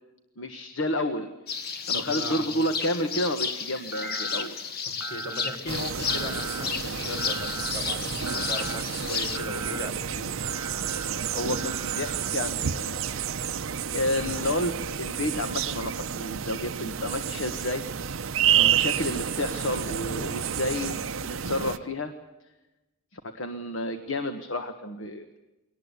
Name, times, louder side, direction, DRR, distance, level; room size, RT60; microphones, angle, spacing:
voice 1, 0.4-1.3 1.9-4.6 11.3-13.1 13.9-17.8 18.5-22.1 23.1-25.4, left 1 dB, 65° left, 7 dB, 1.5 m, -31 dB
sound 1, 1.5-9.4, left 5 dB, 45° left, 1.5 m, -32 dB
voice 2, 1.7-2.5 4.9-10.3 18.5-18.8, left 1 dB, 80° left, 5 dB, 4.1 m, -38 dB
sound 2, 3.9-4.5 5.0-5.6 6.1-6.7 7.2-7.7 8.3-8.8 9.3-9.9 10.4-12.4, right 3 dB, 10° right, 1.2 m, -39 dB
sound 3, 5.7-21.8, right 8 dB, 75° right, 0.8 m, -30 dB
23.0 x 18.5 x 8.3 m, 1.0 s
head